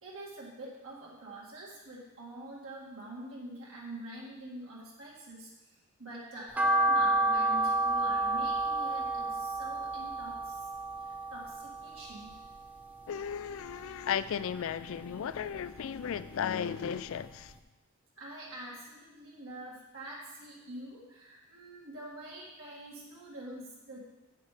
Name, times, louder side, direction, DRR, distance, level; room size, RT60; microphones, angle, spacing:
voice 1, 0.0-10.7 11.0-12.4 18.2-24.0, right 1 dB, 65° right, 2.0 m, -46 dB
sound 1, 6.6-12.9 13.2-14.4 14.7-16.2 16.5-16.6 17.1-17.2 17.4-17.5, right 2 dB, 5° right, 0.6 m, -30 dB
voice 2, 13.1-17.6, left 8 dB, 60° left, 0.3 m, -35 dB
8.0 x 6.7 x 4.9 m
head